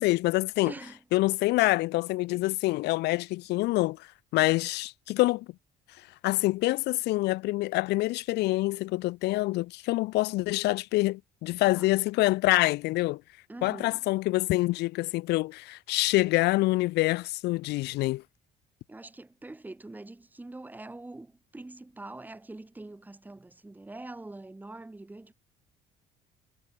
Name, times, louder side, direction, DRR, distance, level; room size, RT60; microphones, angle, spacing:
voice 1, 0.0-0.7 1.1-4.1 4.3-5.5 6.2-13.2 13.6-18.2, left 20 dB, 85° left, 0.9 m, -26 dB
voice 2, 0.7-1.0 11.7-11.9 13.5-14.0 18.9-25.3, right 2 dB, 10° right, 1.8 m, -44 dB
cardioid pair, 110°, 17 cm